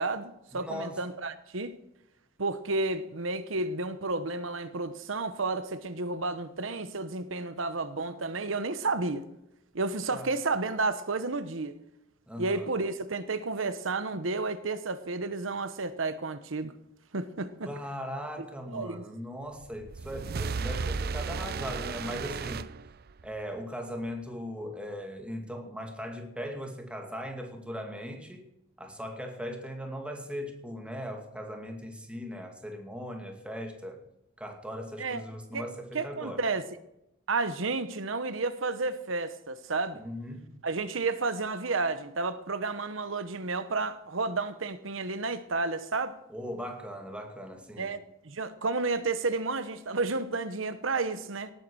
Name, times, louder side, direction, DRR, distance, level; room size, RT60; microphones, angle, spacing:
voice 1, 0.0-1.8 2.4-9.2 9.7-11.7 12.4-16.7 17.1-17.7 18.7-19.0 35.0-35.2 35.5-35.6 35.9-36.6 37.3-40.0 40.6-46.2 47.8-48.0 48.2-51.5, right 3 dB, 80° right, 1.0 m, -31 dB
voice 2, 0.5-1.0 10.1-10.3 12.3-12.7 17.6-22.7 23.2-28.4 28.8-34.0 34.4-36.4 39.9-40.5 46.3-47.9, equal, 5° right, 2.4 m, -39 dB
sound 1, 19.6-23.4, right 4 dB, 50° right, 0.5 m, -34 dB
18.0 x 9.3 x 6.3 m
head